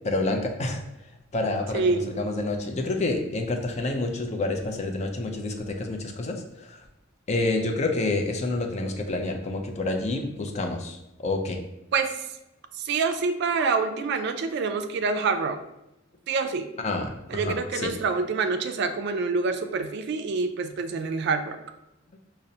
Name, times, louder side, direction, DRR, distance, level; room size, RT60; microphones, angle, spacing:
voice 1, 0.0-0.8 1.3-6.8 7.3-11.6 16.8-17.9, left 2 dB, 35° left, 4 dB, 0.4 m, -28 dB
voice 2, 1.7-2.1 11.9-12.3 12.8-15.6 16.3-16.7 17.3-21.6, right 4 dB, 60° right, 8 dB, 0.3 m, -26 dB
5.2 x 2.0 x 2.7 m, 0.88 s
head